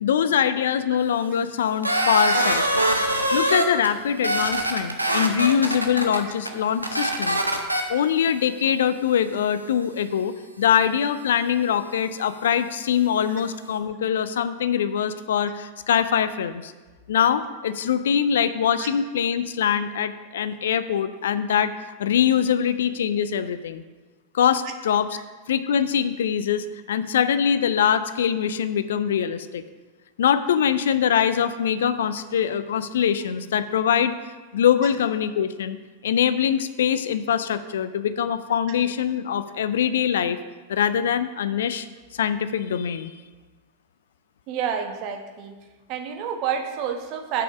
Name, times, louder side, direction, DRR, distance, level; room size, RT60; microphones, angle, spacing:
voice 1, 0.0-2.7 3.3-7.4 7.9-16.7 17.1-21.7 22.0-23.8 24.3-25.1 25.5-29.6 30.2-34.1 34.5-35.8 36.0-40.4 40.7-41.9 42.1-43.1, left 8 dB, 60° left, 13 dB, 0.4 m, -23 dB
sound 1, 1.8-3.9 4.2-6.2 6.5-6.6 6.8-7.8, right 1 dB, 85° right, 0.8 m, -23 dB
voice 2, 44.5-45.5 45.9-47.4, right 8 dB, 40° right, 5 dB, 1.1 m, -29 dB
6.8 x 5.9 x 7.0 m, 1.3 s
figure-of-eight pair, 90°, 0 cm